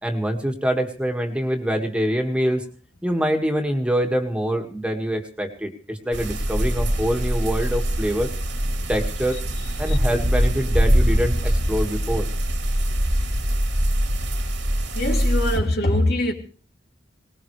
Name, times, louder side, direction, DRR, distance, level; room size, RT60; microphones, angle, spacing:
voice 1, 0.0-2.6 3.0-8.3 8.9-9.4 9.8-12.3, equal, 5° right, 2.0 m, -25 dB
sound 1, 6.1-15.6, equal, 90° right, 3.1 m, -23 dB
voice 2, 14.9-16.3, left 1 dB, 60° left, 3.1 m, -23 dB
21.0 x 20.0 x 3.3 m
head